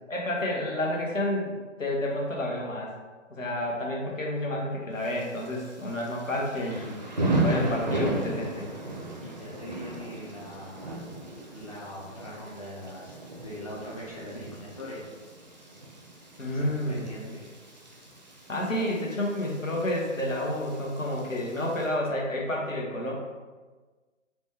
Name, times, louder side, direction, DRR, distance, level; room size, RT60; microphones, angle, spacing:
voice 1, 0.1-2.9 3.3-6.9 7.4-8.7 16.4-17.3 18.5-23.1, left 1 dB, 75° left, -2 dB, 1.1 m, -30 dB
Thunder / Rain, 5.0-21.9, right 2 dB, 35° right, 0.4 m, -35 dB
voice 2, 9.2-15.2 16.5-17.4, equal, 30° left, -6 dB, 0.4 m, -42 dB
4.1 x 2.2 x 3.3 m, 1.3 s
figure-of-eight pair, 140°, 39 cm